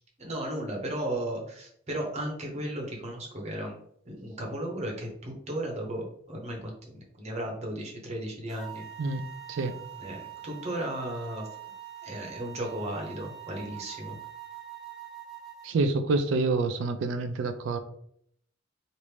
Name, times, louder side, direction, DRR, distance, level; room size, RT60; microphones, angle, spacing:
voice 1, 0.2-3.8 4.1-8.9 10.0-11.5 12.0-14.2, right 1 dB, 35° right, 0 dB, 0.8 m, -35 dB
sound 1, 8.5-15.7, right 10 dB, 5° right, 0.9 m, -44 dB
voice 2, 15.6-17.8, right 3 dB, 75° right, 8 dB, 0.3 m, -27 dB
3.1 x 2.5 x 3.2 m, 0.66 s
head